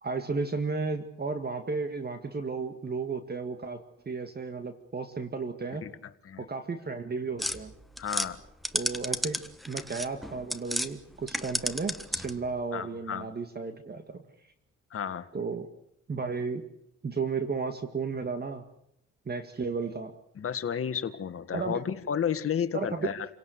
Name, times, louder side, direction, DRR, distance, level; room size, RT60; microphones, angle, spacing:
voice 1, 0.0-5.8 6.4-7.7 8.7-14.3 15.3-15.7 16.1-16.6 17.0-18.6 19.3-20.1 21.5-21.8 22.7-23.1, right 4 dB, 30° right, 7 dB, 2.0 m, -33 dB
sound 1, 7.4-10.9 11.2-12.5, equal, ahead, 1.5 m, -33 dB
voice 2, 8.0-8.4 12.7-13.3 14.9-15.3 20.4-23.3, left 8 dB, 50° left, 10 dB, 1.9 m, -32 dB
28.5 x 17.5 x 8.2 m, 0.75 s
cardioid pair, 90°, 30 cm